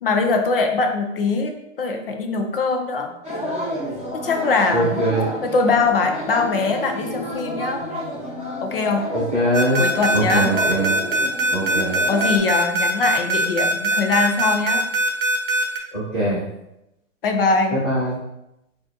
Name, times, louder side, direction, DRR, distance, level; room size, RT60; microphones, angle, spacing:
voice 1, 0.0-1.5 1.8-3.1 4.2-5.0 5.4-7.8 8.6-9.1 9.8-10.5 12.1-14.8 17.2-17.8, left 4 dB, 45° left, 4 dB, 0.5 m, -22 dB
sound 1, 3.2-12.4, left 1 dB, 20° left, 1.3 m, -30 dB
voice 2, 4.7-5.3 9.1-9.8 10.1-10.9 11.5-12.0 15.9-16.4 17.8-18.2, right 1 dB, 10° right, -17 dB, 0.4 m, -22 dB
sound 2, 9.5-15.8, right 2 dB, 45° right, 0.8 m, -21 dB
4.8 x 2.5 x 2.7 m, 0.88 s
hypercardioid pair, 165°, 39 cm